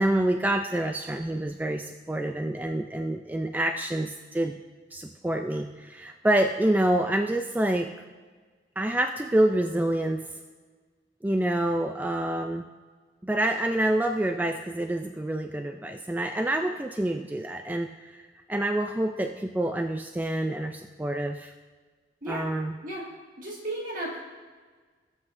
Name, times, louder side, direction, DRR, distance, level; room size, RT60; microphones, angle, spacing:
voice 1, 0.0-4.5 4.9-7.9 8.8-10.3 11.2-12.6 13.2-21.5 22.3-22.7, right 1 dB, 10° right, 5 dB, 0.3 m, -27 dB
voice 2, 23.4-24.2, right 1 dB, 50° right, -4 dB, 1.9 m, -34 dB
19.0 x 7.8 x 2.6 m, 1.4 s
head